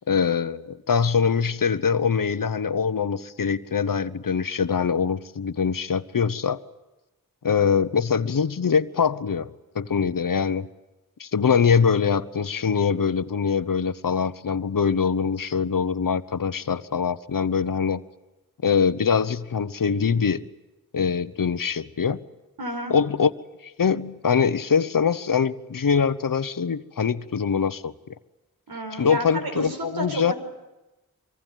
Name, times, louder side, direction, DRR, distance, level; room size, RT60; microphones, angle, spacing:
voice 1, 0.1-6.6 7.4-10.7 11.2-18.0 18.6-20.5 20.9-22.2 22.9-23.3 23.6-27.9 28.9-30.3, left 6 dB, 60° left, 1.1 m, -23 dB
voice 2, 22.6-23.0 28.7-30.3, right 1 dB, 85° right, 5.1 m, -31 dB
25.5 x 24.0 x 9.2 m
cardioid pair, 40°, 36 cm